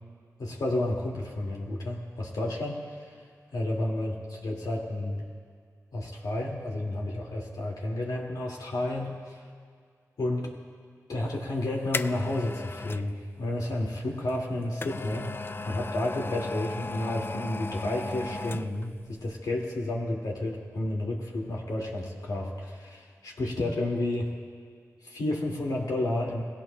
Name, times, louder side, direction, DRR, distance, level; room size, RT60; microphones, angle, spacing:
voice 1, 0.4-3.2 3.5-5.2 5.9-9.4 10.2-10.5 11.1-15.4 15.6-24.3 25.0-26.4, left 1 dB, 85° left, -1 dB, 2.2 m, -31 dB
sound 1, 11.3-13.1 14.3-18.9 19.3-19.4, left 3 dB, 35° left, 0.4 m, -36 dB
20.5 x 16.5 x 2.2 m, 2.1 s
cardioid pair, 55°, 6 cm